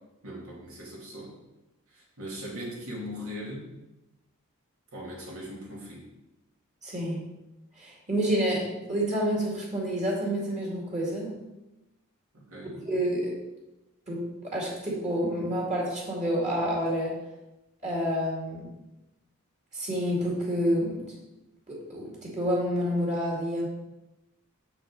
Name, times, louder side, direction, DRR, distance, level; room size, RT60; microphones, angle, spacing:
voice 1, 0.2-1.3 1.9-3.7 4.9-6.0 12.3-12.8, equal, 70° right, -3 dB, 2.7 m, -39 dB
voice 2, 6.8-7.2 7.8-11.3 12.7-13.3 14.1-17.1 17.8-18.7 19.7-21.1 21.7-23.7, equal, 35° right, -3 dB, 2.3 m, -29 dB
6.9 x 6.1 x 5.1 m, 0.97 s
head